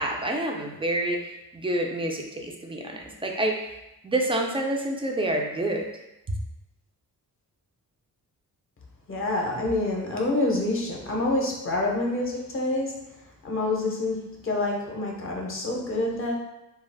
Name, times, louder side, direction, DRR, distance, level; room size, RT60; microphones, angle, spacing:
voice 1, 0.0-3.7 4.0-5.9 6.3-6.4, right 1 dB, 15° right, 1 dB, 0.3 m, -28 dB
voice 2, 9.1-12.9 13.4-16.3, left 2 dB, 40° left, -1 dB, 0.6 m, -27 dB
2.3 x 2.3 x 3.3 m, 0.94 s
cardioid pair, 105°, 33 cm